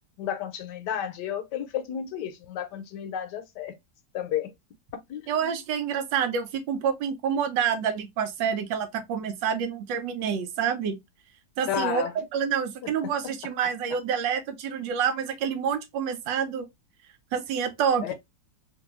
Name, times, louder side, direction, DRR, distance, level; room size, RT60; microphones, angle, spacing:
voice 1, 0.2-3.8 4.1-4.5 5.1-5.6 11.7-12.3 12.8-13.3 18.0-18.1, left 9 dB, 75° left, 1.2 m, -32 dB
voice 2, 5.3-11.0 11.6-16.7 17.3-18.1, right 7 dB, 90° right, 1.4 m, -28 dB
2.9 x 2.6 x 3.0 m
omnidirectional pair, 1.9 m